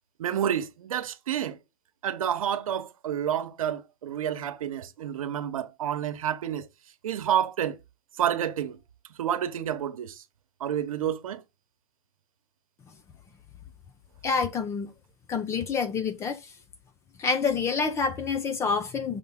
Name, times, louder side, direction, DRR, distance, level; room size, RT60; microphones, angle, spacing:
voice 1, 0.2-1.6 2.0-6.7 7.0-7.8 8.2-8.8 9.2-10.2 10.6-11.4, right 10 dB, 80° right, 1.1 m, -29 dB
voice 2, 14.2-14.9 15.3-16.5 17.2-19.2, left 5 dB, 15° left, 0.6 m, -27 dB
6.6 x 5.5 x 3.7 m
hypercardioid pair, 150°, 18 cm